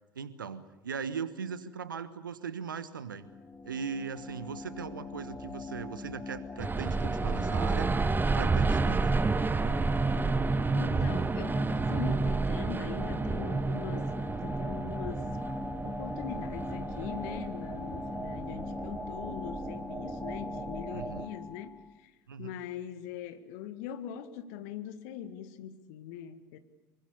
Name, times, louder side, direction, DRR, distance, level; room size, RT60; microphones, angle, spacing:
voice 1, 0.1-3.3 3.6-7.9 8.2-9.2 20.9-21.3 22.3-22.6, right 6 dB, 80° right, 14 dB, 1.3 m, -39 dB
sound 1, 3.1-22.0, left 3 dB, 20° left, 1.6 m, -41 dB
sound 2, 6.6-21.3, right 4 dB, 20° right, 1.0 m, -31 dB
voice 2, 10.7-15.3 15.8-22.1 22.4-26.6, left 9 dB, 60° left, 10 dB, 1.8 m, -42 dB
25.0 x 23.5 x 7.0 m, 1.1 s
figure-of-eight pair, 65°, 11 cm